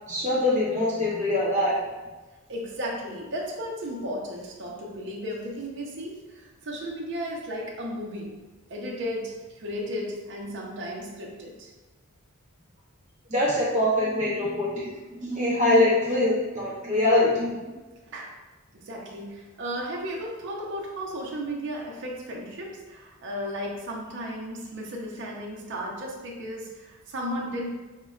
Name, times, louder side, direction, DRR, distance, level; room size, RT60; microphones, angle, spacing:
voice 1, 0.1-1.8 13.3-14.9 15.2-17.5, left 1 dB, 35° right, -7 dB, 0.9 m, -23 dB
voice 2, 2.5-8.3 8.7-11.7 18.1-18.3 18.7-27.7, equal, 55° right, -2 dB, 0.6 m, -34 dB
5.5 x 2.1 x 2.3 m, 1.2 s
head